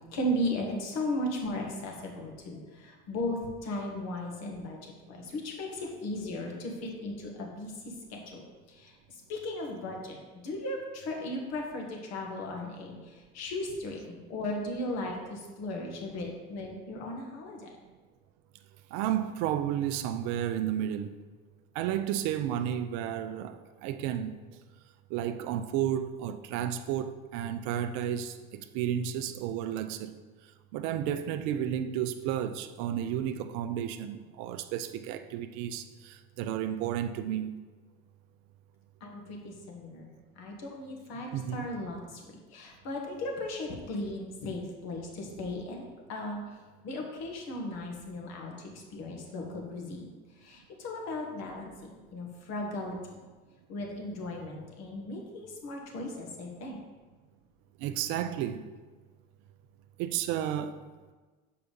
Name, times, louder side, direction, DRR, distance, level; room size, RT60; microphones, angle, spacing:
voice 1, 0.1-8.4 8.7-17.7 39.0-40.1 40.4-42.2 42.5-46.4 46.8-50.1 50.4-53.0 53.7-56.8, left 1 dB, 65° left, 1.8 m, -36 dB
voice 2, 18.9-21.1 21.7-24.4 25.1-30.2 30.7-37.6 41.3-41.7 57.8-58.7 60.0-60.8, right 10 dB, 70° right, 0.6 m, -32 dB
6.8 x 4.8 x 5.2 m
supercardioid pair, 85°, 29 cm